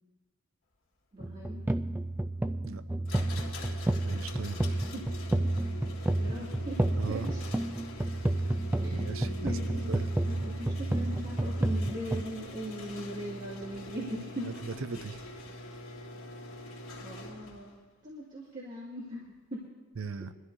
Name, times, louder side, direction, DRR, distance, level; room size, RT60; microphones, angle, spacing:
voice 1, 1.1-1.6 4.7-5.0 6.2-7.4 8.8-9.0 9.4-10.0 10.3-14.5 17.0-19.2 19.5-19.6, equal, 40° right, -7 dB, 2.2 m, -40 dB
sound 1, 1.2-12.2, right 1 dB, 10° right, 0.3 m, -31 dB
sound 2, 3.1-17.7, left 1 dB, 90° left, 2.0 m, -44 dB
voice 2, 4.0-4.6 6.9-7.3 8.9-9.6 9.9-10.1 14.4-15.2 20.0-20.3, right 5 dB, 80° right, 11 dB, 0.6 m, -38 dB
22.5 x 13.0 x 2.7 m, 1.2 s
head